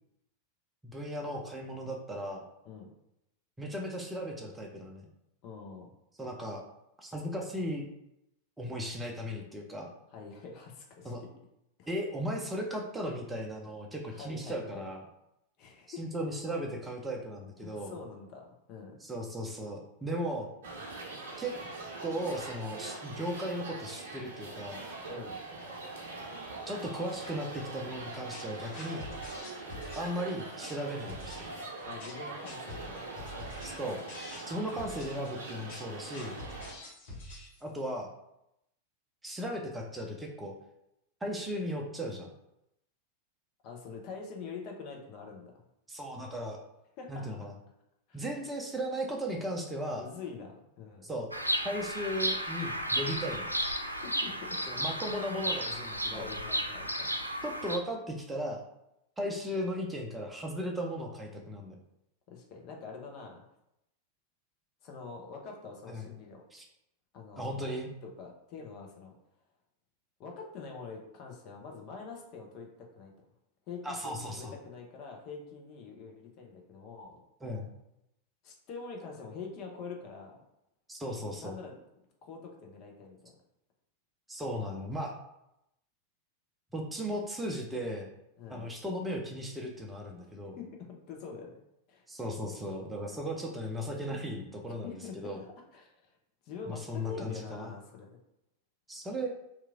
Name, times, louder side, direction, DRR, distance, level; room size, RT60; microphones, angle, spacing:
voice 1, 0.8-2.4 3.6-5.0 6.2-6.6 7.0-7.9 8.6-9.9 11.0-11.2 11.9-15.0 15.9-18.0 19.0-20.5 21.4-21.6 22.0-24.8 26.7-29.1 30.0-31.5 33.6-34.0 34.5-36.4 37.6-38.1 39.2-40.5 41.2-42.3 45.9-46.6 47.1-47.5 48.1-50.1 51.0-51.3 51.6-53.5 54.7-56.3 57.4-58.6 59.2-61.7 65.9-66.1 66.5-66.6 67.4-67.9 73.8-74.5 77.4-77.7 80.9-81.5 84.3-85.1 86.7-88.1 88.5-90.6 92.1-95.4 96.7-97.7 98.9-99.3, equal, 10° right, 0 dB, 0.6 m, -36 dB
voice 2, 5.4-5.9 10.1-11.3 11.8-11.9 14.1-14.9 15.6-16.2 17.6-19.0 25.1-25.5 31.8-33.1 43.6-45.6 47.0-47.3 48.1-48.2 49.9-51.1 54.0-54.6 56.1-57.1 62.3-63.4 64.8-66.4 67.1-67.5 68.0-69.1 70.2-73.1 73.7-77.2 78.4-80.4 81.4-81.8 82.2-83.3 88.4-88.7 90.2-91.6 91.9-92.0 94.8-95.5 95.7-96.1 96.4-98.2, left 5 dB, 40° left, 1 dB, 0.7 m, -45 dB
sound 1, 20.6-36.7, right 3 dB, 60° right, 0.7 m, -43 dB
sound 2, 28.3-37.8, left 2 dB, 55° left, 1.3 m, -47 dB
Bird vocalization bird call bird song, 51.3-57.8, equal, 90° right, 0.3 m, -33 dB
3.0 x 2.4 x 3.5 m, 0.83 s
figure-of-eight pair, 90°, 0 cm